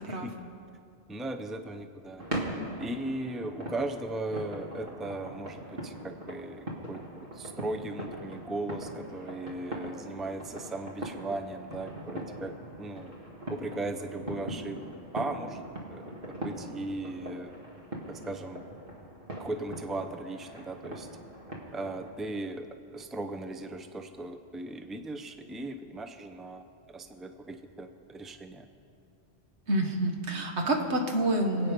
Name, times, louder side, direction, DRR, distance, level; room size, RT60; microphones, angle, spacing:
voice 1, 0.1-0.4 1.1-2.2 2.8-7.0 7.3-13.1 13.5-14.8 15.1-17.6 18.1-18.6 19.4-21.1 21.7-28.7, right 2 dB, ahead, 6 dB, 0.5 m, -37 dB
sound 1, 2.2-22.1, right 1 dB, 55° right, 2.2 m, -41 dB
voice 2, 29.7-31.7, right 1 dB, 75° right, 2 dB, 1.8 m, -28 dB
25.5 x 8.9 x 5.3 m, 2.4 s
omnidirectional pair, 1.1 m